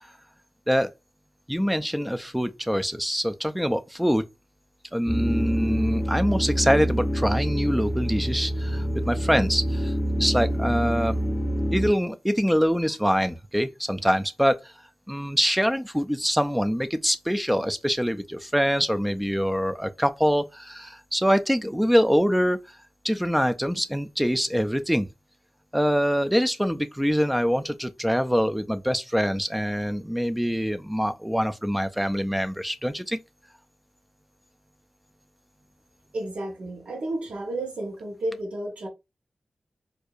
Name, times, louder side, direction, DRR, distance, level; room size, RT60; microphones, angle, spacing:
voice 1, 1.5-4.2 4.9-11.2 11.7-14.7 15.1-22.6 23.0-25.1 25.7-33.2, equal, ahead, 0.4 m, -24 dB
sound 1, 5.1-11.9, equal, 30° left, 0.7 m, -26 dB
voice 2, 36.1-38.9, right 1 dB, 80° right, 1.0 m, -32 dB
4.5 x 2.6 x 2.4 m
wide cardioid pair, 110°, 2 cm